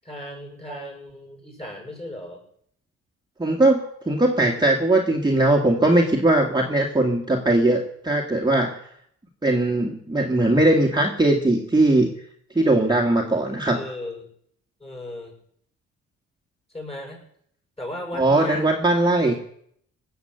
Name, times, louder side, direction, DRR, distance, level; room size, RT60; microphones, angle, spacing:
voice 1, 0.0-2.4 13.7-14.3 14.8-15.3 16.7-17.2 17.8-18.7 19.2-19.4, left 1 dB, 20° left, 2 dB, 7.0 m, -36 dB
voice 2, 3.4-8.8 9.4-12.1 12.6-13.8 18.1-19.3, right 2 dB, 15° right, 0 dB, 2.1 m, -20 dB
18.0 x 7.3 x 8.0 m, 0.67 s
supercardioid pair, 70°, 29 cm